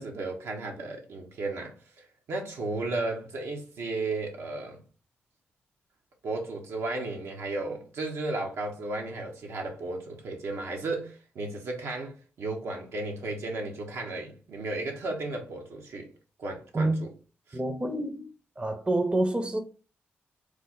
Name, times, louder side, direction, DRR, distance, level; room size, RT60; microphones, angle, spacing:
voice 1, 0.0-4.8 6.2-16.1 16.4-17.1 17.5-17.6, right 2 dB, 75° right, 0.8 m, -34 dB
voice 2, 17.5-18.3 18.6-19.6, right 2 dB, 20° right, 0.6 m, -27 dB
3.1 x 2.0 x 3.8 m
supercardioid pair, 45°, 5 cm